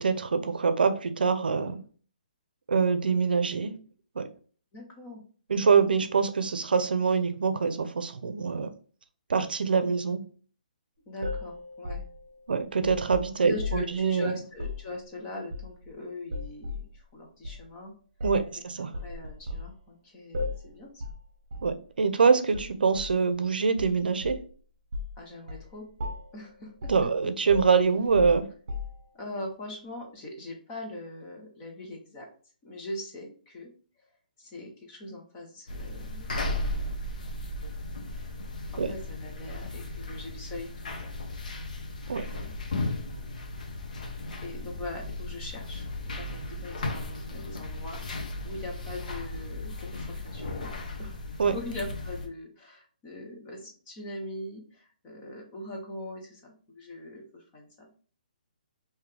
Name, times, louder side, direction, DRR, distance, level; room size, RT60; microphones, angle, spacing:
voice 1, 0.0-1.8 2.7-3.8 4.2-4.3 5.5-8.7 9.3-10.2 12.5-14.3 18.2-18.9 21.6-24.4 26.9-28.5 38.8-38.9 42.1-42.2 51.4-51.5, right 5 dB, 80° right, 0.5 m, -25 dB
voice 2, 4.7-5.2 11.1-12.0 13.4-17.9 19.0-21.0 25.2-25.8 26.3-27.1 29.1-32.3 32.6-33.7 34.4-37.2 38.1-38.4 38.7-41.1 42.3-42.5 43.1-43.3 43.8-44.2 44.4-50.7 51.0-51.1 51.4-57.9, left 1 dB, 10° left, 0.5 m, -41 dB
sound 1, 11.2-14.0 14.5-14.8 15.5-15.9 16.3-16.9 17.4-17.6 18.2-18.5 18.9-19.7 20.3-20.7 21.0-21.2 21.5-21.7 22.5-23.2 23.8-24.5 24.9-25.2 25.5-25.7 26.0-26.4 26.8-27.1 27.5-29.2, left 3 dB, 45° right, 0.9 m, -36 dB
sound 2, 35.7-52.3, left 2 dB, 55° left, 0.8 m, -36 dB
3.8 x 2.7 x 3.2 m
hypercardioid pair, 180°, 5 cm